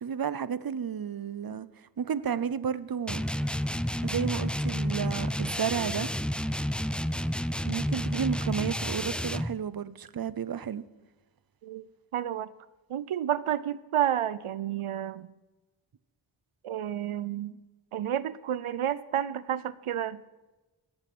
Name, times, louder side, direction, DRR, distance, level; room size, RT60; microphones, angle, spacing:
voice 1, 0.0-1.7 2.0-3.2 4.0-6.1 7.6-10.8, right 7 dB, 45° right, 0.7 m, -32 dB
sound 1, 3.1-9.5, equal, ahead, 0.4 m, -30 dB
voice 2, 12.1-12.5 12.9-15.3 16.6-17.6 17.9-20.2, right 10 dB, 90° right, 0.6 m, -30 dB
16.5 x 8.8 x 6.1 m
wide cardioid pair, 65°, 49 cm